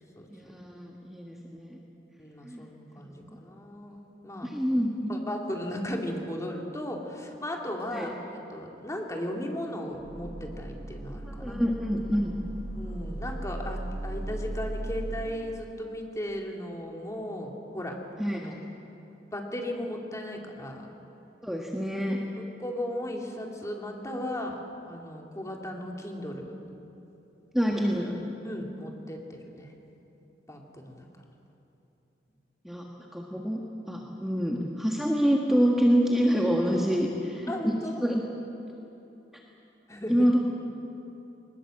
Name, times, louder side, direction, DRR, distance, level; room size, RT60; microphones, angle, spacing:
voice 1, 0.3-1.8 2.4-2.6 4.4-5.1 7.9-8.1 11.3-12.3 18.2-18.4 21.4-22.2 27.5-28.2 32.6-32.8 33.1-33.6 33.9-37.7 38.0-38.2 40.1-40.4, equal, ahead, -1 dB, 1.5 m, -26 dB
voice 2, 2.2-4.5 5.1-11.6 12.8-18.0 18.3-18.5 19.3-20.9 22.4-24.5 24.9-26.6 28.4-29.7 30.5-31.1 37.5-38.0 39.9-40.3, left 1 dB, 20° left, 1 dB, 2.5 m, -36 dB
sound 1, 7.8-7.9 8.4-15.2, right 1 dB, 35° right, 3.7 m, -37 dB
21.5 x 20.0 x 7.7 m, 2.9 s
head